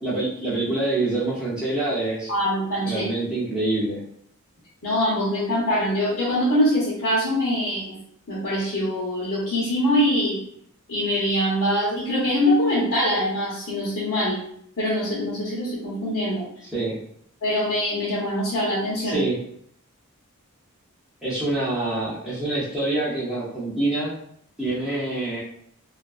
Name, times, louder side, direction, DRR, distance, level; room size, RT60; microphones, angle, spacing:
voice 1, 0.0-2.3 2.8-4.0 16.7-17.0 19.0-19.4 21.2-24.1 24.6-25.4, right 2 dB, 5° right, -9 dB, 0.6 m, -26 dB
voice 2, 2.3-3.1 4.8-8.0 8.3-10.4 10.9-14.4 14.8-16.5 17.4-19.2, equal, 70° left, -8 dB, 0.9 m, -23 dB
2.8 x 2.4 x 2.3 m, 0.68 s
head